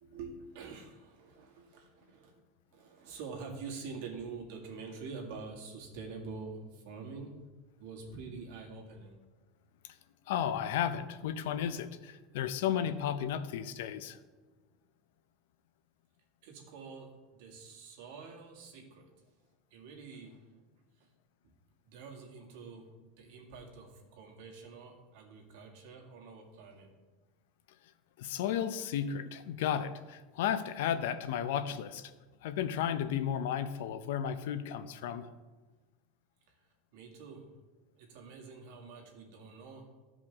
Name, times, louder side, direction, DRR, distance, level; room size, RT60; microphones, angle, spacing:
voice 1, 0.0-2.3 2.7-7.4 7.8-9.2 16.4-19.1 19.7-20.6 21.0-21.1 21.9-26.9 36.9-37.5 38.0-39.9, right 4 dB, 65° right, 0 dB, 2.0 m, -46 dB
voice 2, 10.3-14.2 28.2-32.1 32.4-35.3, left 9 dB, 75° left, 12 dB, 0.6 m, -33 dB
15.0 x 5.1 x 3.6 m, 1.3 s
supercardioid pair, 165°, 0 cm